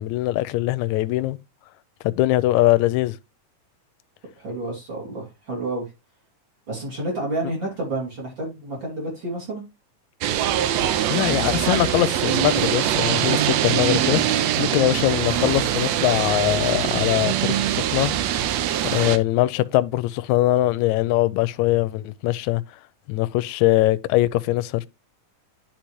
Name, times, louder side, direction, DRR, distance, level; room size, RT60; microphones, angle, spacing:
voice 1, 0.0-1.4 2.0-3.1 11.1-18.1 18.9-22.6 23.1-24.9, left 16 dB, 80° left, 1.8 m, -22 dB
voice 2, 4.4-5.9 6.7-9.6, right 2 dB, 40° right, 3.2 m, -30 dB
sound 1, 10.2-19.2, right 11 dB, 75° right, 1.7 m, -23 dB
10.5 x 4.3 x 3.0 m
omnidirectional pair, 3.5 m